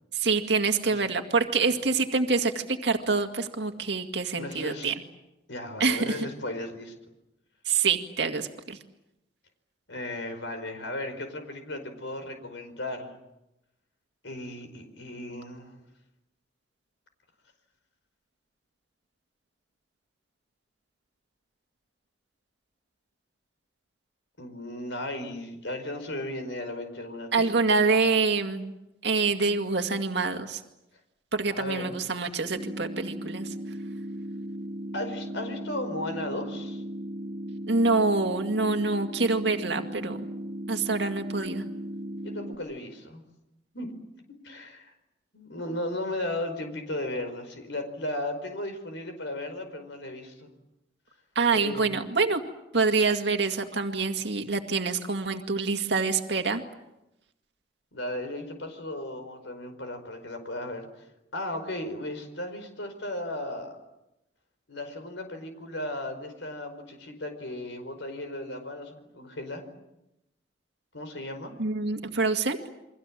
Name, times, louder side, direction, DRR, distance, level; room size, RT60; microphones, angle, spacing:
voice 1, 0.1-4.9 5.8-6.2 7.7-8.8 27.3-28.7 29.0-30.6 31.3-33.5 37.7-40.2 40.7-41.6 51.4-52.4 52.7-56.6 71.6-72.6, right 4 dB, 70° right, 5 dB, 2.1 m, -26 dB
voice 2, 4.3-4.9 5.5-6.9 9.9-13.1 14.2-15.8 24.4-27.5 31.5-31.9 34.9-36.8 42.2-43.2 43.7-43.9 44.4-44.9 45.3-50.5 51.5-52.0 57.9-61.0 61.3-63.7 64.7-69.6 70.9-71.5, left 1 dB, 80° left, 7 dB, 5.0 m, -35 dB
sound 1, 32.6-42.6, equal, 30° right, 1.3 m, -37 dB
29.5 x 24.0 x 7.6 m, 0.89 s
head